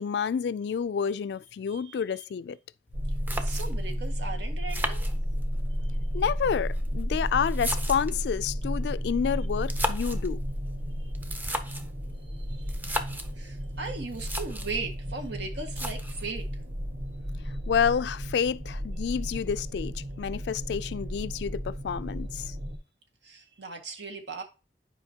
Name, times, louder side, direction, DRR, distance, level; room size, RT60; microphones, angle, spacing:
voice 1, 0.0-2.6 6.1-10.4 17.7-22.5, left 7 dB, 65° left, 0.3 m, -29 dB
voice 2, 1.7-2.2 3.4-5.1 11.0-11.1 12.3-13.0 13.3-16.4 23.2-24.4, right 4 dB, 75° right, 1.7 m, -38 dB
sound 1, 2.9-3.0 3.3-3.9 4.7-5.7 6.6-8.3 9.5-10.3 11.1-11.9 12.7-13.3 13.9-14.0 14.1-14.8 15.7-16.3, equal, 10° right, 0.6 m, -35 dB
sound 2, 2.9-22.8, equal, 45° right, 1.3 m, -33 dB
10.5 x 5.0 x 2.8 m
head